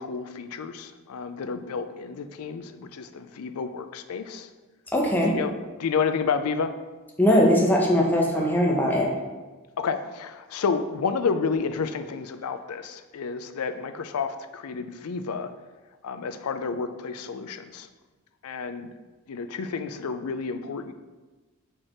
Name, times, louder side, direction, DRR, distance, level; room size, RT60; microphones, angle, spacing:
voice 1, 0.0-4.5 5.3-5.5 5.8-6.7 9.8-15.5 16.0-17.9 18.4-18.9 19.3-20.9, left 5 dB, 90° left, 10 dB, 0.4 m, -30 dB
voice 2, 4.9-5.3 7.2-9.1, equal, 10° left, -1 dB, 0.8 m, -20 dB
4.8 x 4.5 x 4.3 m, 1.2 s
head